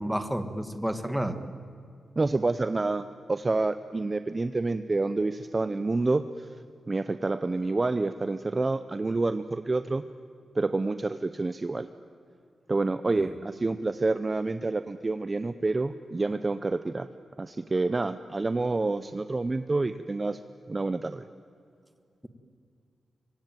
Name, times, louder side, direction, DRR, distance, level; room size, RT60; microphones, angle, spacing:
voice 1, 0.0-1.4 13.1-13.3, right 1 dB, 5° right, 9 dB, 1.6 m, -30 dB
voice 2, 2.2-6.5 6.9-10.0 10.5-11.9 12.7-17.1 17.4-20.4 20.7-21.2, right 3 dB, 25° right, 12 dB, 0.7 m, -28 dB
25.0 x 24.0 x 9.1 m, 2.4 s
wide cardioid pair, 150°, 0 cm